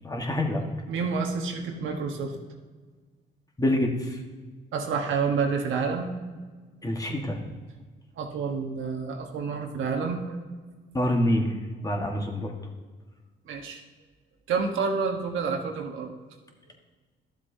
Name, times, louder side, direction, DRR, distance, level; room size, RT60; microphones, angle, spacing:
voice 1, 0.0-0.6 3.6-4.2 6.8-7.4 10.9-11.5 11.8-12.5, left 1 dB, 20° left, 1 dB, 1.5 m, -26 dB
voice 2, 0.9-2.3 4.7-6.1 8.2-10.4 13.5-13.8 14.5-16.1, right 5 dB, 80° right, 2 dB, 1.3 m, -29 dB
12.5 x 7.5 x 2.7 m, 1.4 s
cardioid pair, 90°, 20 cm